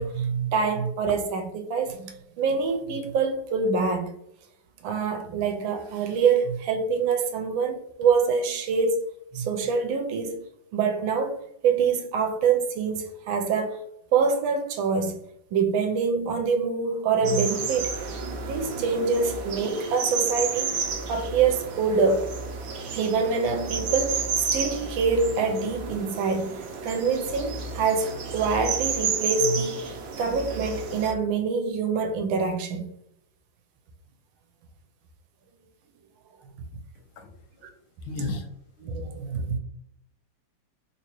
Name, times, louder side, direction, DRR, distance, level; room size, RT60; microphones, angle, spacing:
voice 1, 0.0-2.1 2.4-4.1 4.8-9.0 9.3-10.4 10.7-11.4 11.6-13.8 14.1-15.2 15.5-18.0 18.4-22.3 22.9-32.9 38.8-39.6, right 5 dB, 85° right, 1.4 m, -25 dB
sound 1, 17.2-31.1, right 5 dB, 70° right, 0.8 m, -31 dB
voice 2, 38.0-38.5, left 3 dB, 90° left, 1.5 m, -32 dB
3.5 x 2.9 x 3.0 m
omnidirectional pair, 2.1 m